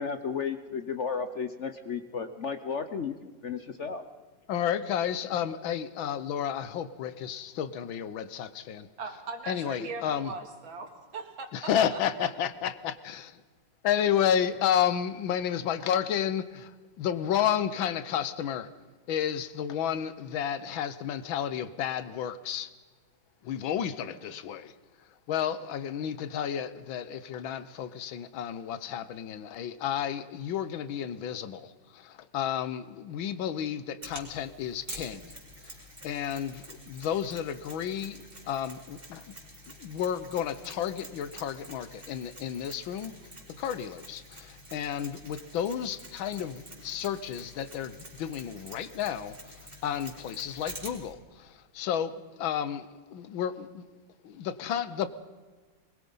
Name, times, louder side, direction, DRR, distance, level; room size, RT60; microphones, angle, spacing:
voice 1, 0.0-3.2 3.4-4.0, left 6 dB, 55° left, 9 dB, 0.9 m, -33 dB
voice 2, 4.5-8.9 9.5-10.3 11.5-13.4 13.8-16.7 17.0-18.7 19.1-22.7 23.4-24.7 25.3-35.3 36.0-39.3 39.8-43.1 43.6-49.4 49.8-53.8 54.2-55.1, left 9 dB, 85° left, 14 dB, 1.7 m, -31 dB
voice 3, 9.0-12.3, right 3 dB, 85° right, 4 dB, 2.9 m, -40 dB
Mechanisms, 34.0-51.1, equal, 25° right, 4.0 m, -48 dB
22.5 x 21.0 x 5.5 m, 1.4 s
omnidirectional pair, 2.1 m